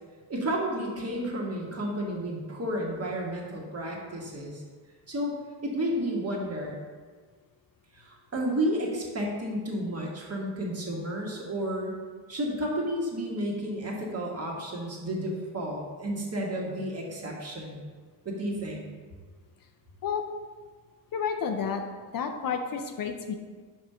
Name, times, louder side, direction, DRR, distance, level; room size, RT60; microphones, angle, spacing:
voice 1, 0.3-4.6 5.1-5.3 5.6-6.8 7.9-11.9 12.3-17.8 18.2-18.8, equal, 35° right, -1 dB, 1.4 m, -31 dB
voice 2, 21.1-21.8 22.1-23.3, left 6 dB, 50° left, 5 dB, 0.5 m, -30 dB
5.0 x 3.5 x 5.5 m, 1.5 s
cardioid pair, 90°, 43 cm